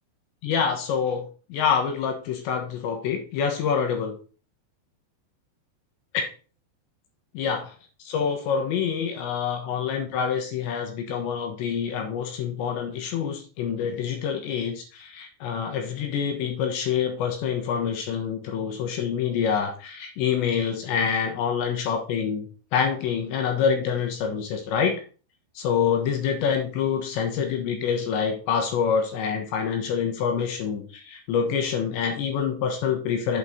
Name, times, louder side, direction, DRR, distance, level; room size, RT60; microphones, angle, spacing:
voice 1, 0.4-1.2 1.5-4.1 6.1-6.2 7.4-7.7 8.0-22.5 22.7-25.0 25.6-33.4, left 7 dB, 70° left, 3 dB, 3.1 m, -26 dB
8.2 x 4.5 x 5.5 m, 0.37 s
omnidirectional pair, 5.9 m